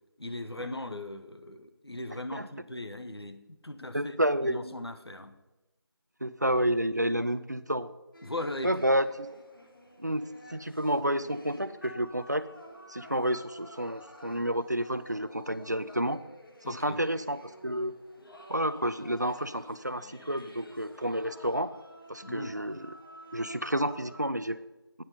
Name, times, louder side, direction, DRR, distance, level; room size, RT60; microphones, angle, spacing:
voice 1, 0.2-4.1 4.5-5.4 8.2-8.8 16.6-17.0 22.2-22.6, left 1 dB, 80° left, 8 dB, 1.0 m, -39 dB
voice 2, 3.9-4.7 6.2-7.9 8.6-9.3 10.0-12.5 12.9-16.2 16.7-17.9 18.5-21.7 22.1-22.9 23.3-24.6, equal, 45° right, 13 dB, 0.4 m, -30 dB
sound 1, 8.1-24.3, equal, 60° left, 1.6 m, -51 dB
8.8 x 6.3 x 5.6 m, 1.0 s
figure-of-eight pair, 175°, 13 cm